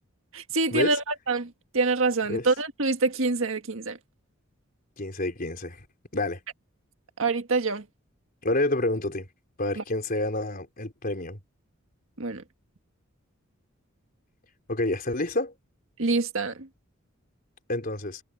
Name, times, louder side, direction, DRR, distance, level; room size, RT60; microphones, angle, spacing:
voice 1, 0.3-4.0 7.2-7.8 9.8-9.9 12.2-12.4 16.0-16.7, right 3 dB, 70° right, 1.7 m, -26 dB
voice 2, 5.0-5.8 6.1-6.4 8.4-9.3 9.6-11.4 14.7-15.5 17.7-18.2, left 2 dB, 45° left, 4.0 m, -28 dB
head